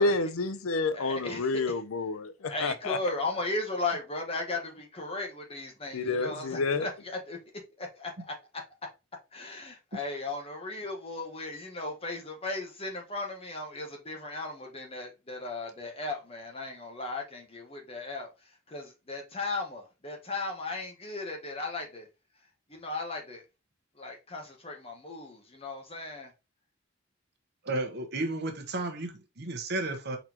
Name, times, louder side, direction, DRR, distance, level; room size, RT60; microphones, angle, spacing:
voice 1, 0.0-3.0 5.9-6.9, left 3 dB, 80° left, 0.5 m, -29 dB
voice 2, 0.9-1.6 2.4-7.4 7.8-8.3 9.3-18.3 18.7-22.1 22.7-23.4 23.9-26.3, left 2 dB, 30° left, 1.2 m, -36 dB
voice 3, 27.6-30.2, right 2 dB, 50° right, 1.0 m, -33 dB
4.4 x 4.0 x 2.8 m
head